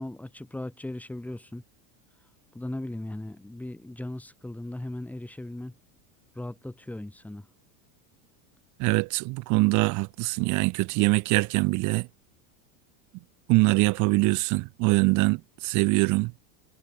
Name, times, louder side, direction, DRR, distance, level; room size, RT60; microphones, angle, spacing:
voice 1, 0.0-1.6 2.5-5.7 6.3-7.5, left 1 dB, 5° left, 6.0 m, -37 dB
voice 2, 8.8-12.1 13.5-16.4, right 25 dB, 45° right, 1.2 m, -23 dB
supercardioid pair, 160°, 41 cm